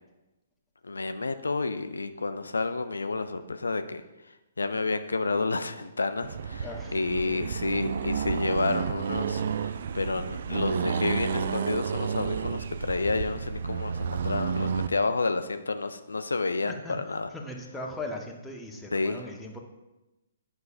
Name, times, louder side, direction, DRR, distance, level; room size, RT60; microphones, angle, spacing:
voice 1, 0.8-17.3 18.9-19.2, left 3 dB, 75° left, 9 dB, 0.4 m, -30 dB
Accelerating revving vroom, 6.2-14.9, right 6 dB, 55° right, 0.3 m, -31 dB
voice 2, 6.6-7.0 16.6-17.0 17.3-19.6, left 2 dB, 5° left, 0 dB, 0.8 m, -38 dB
9.5 x 5.6 x 2.4 m, 1.0 s
figure-of-eight pair, 125°, 0 cm